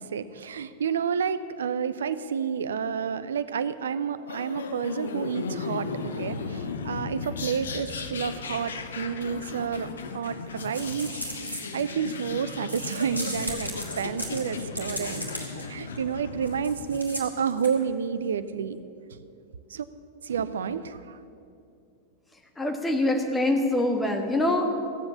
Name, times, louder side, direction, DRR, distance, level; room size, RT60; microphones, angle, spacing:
voice 1, 0.0-11.1 11.4-13.7 14.0-18.8 19.1-19.2 19.7-19.9 20.2-21.2, right 7 dB, 65° right, 14 dB, 0.5 m, -30 dB
sound 1, 4.3-17.0, left 4 dB, 65° left, 0.8 m, -36 dB
sound 2, 10.7-12.2 12.7-15.6 15.9-16.0 16.4-17.8, equal, 85° right, 2.0 m, -36 dB
voice 2, 22.6-24.7, left 1 dB, 10° left, 3 dB, 1.5 m, -24 dB
15.5 x 7.7 x 6.9 m, 2.5 s
figure-of-eight pair, 90°, 0 cm